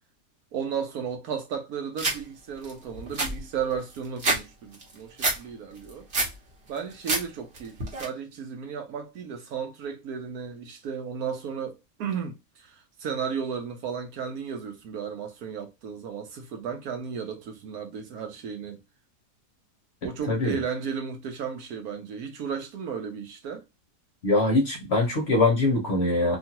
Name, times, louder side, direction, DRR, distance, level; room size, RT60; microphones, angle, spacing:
voice 1, 0.5-6.1 6.7-18.8 20.0-23.7, right 7 dB, 70° right, 1.1 m, -34 dB
sound 1, 2.0-2.2 2.6-2.7 3.0-4.4 4.7-5.4 5.8-6.4 6.8-7.2 7.5-8.0, right 3 dB, 45° right, 1.1 m, -27 dB
voice 2, 20.3-20.6 24.2-26.4, left 2 dB, 50° left, 0.9 m, -23 dB
2.9 x 2.4 x 2.8 m
omnidirectional pair, 1.7 m